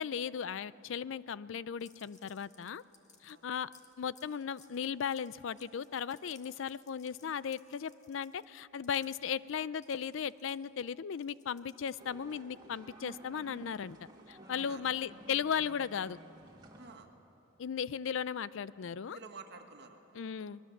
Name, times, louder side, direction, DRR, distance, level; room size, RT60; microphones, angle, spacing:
voice 1, 0.0-2.8 3.2-3.7 4.0-14.0 14.3-16.2 17.6-19.2 20.1-20.6, left 7 dB, 70° left, 18 dB, 0.4 m, -36 dB
sound 1, 1.8-9.1 9.8-12.2, left 5 dB, 35° left, 1.9 m, -62 dB
sound 2, 12.0-17.0, right 1 dB, 20° right, 2.1 m, -53 dB
voice 2, 14.6-14.9 16.7-17.1 19.0-20.5, right 4 dB, 60° right, 4 dB, 1.8 m, -51 dB
24.5 x 21.0 x 7.2 m, 2.9 s
head